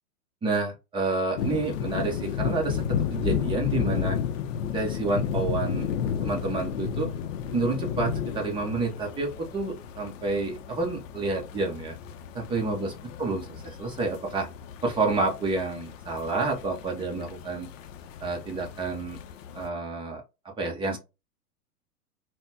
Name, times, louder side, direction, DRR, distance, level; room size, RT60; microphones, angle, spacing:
voice 1, 0.4-4.2 4.7-5.9 6.2-7.1 7.5-11.9 12.3-12.9 13.2-14.5 14.8-17.7 18.2-19.2 19.5-20.2 20.6-21.0, right 3 dB, 10° right, 1 dB, 0.6 m, -29 dB
sound 1, 1.4-19.7, left 8 dB, 60° left, 0.6 m, -33 dB
3.8 x 2.2 x 2.7 m, 0.27 s
hypercardioid pair, 125°, 45 cm